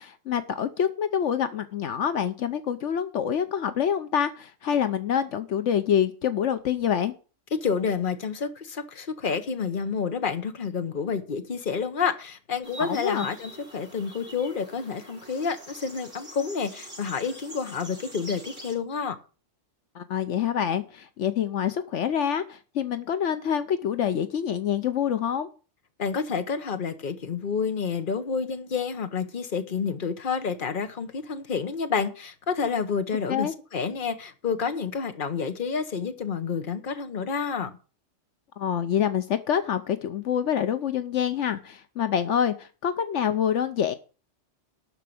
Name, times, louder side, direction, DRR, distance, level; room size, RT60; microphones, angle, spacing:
voice 1, 0.0-7.1 12.8-13.3 19.9-25.5 33.3-33.5 38.6-44.0, left 8 dB, 75° left, 1.1 m, -26 dB
voice 2, 7.5-19.2 26.0-37.7, left 6 dB, 45° left, 1.3 m, -29 dB
sound 1, 12.6-18.7, right 1 dB, 50° right, 5.3 m, -44 dB
12.5 x 4.7 x 8.6 m
omnidirectional pair, 1.3 m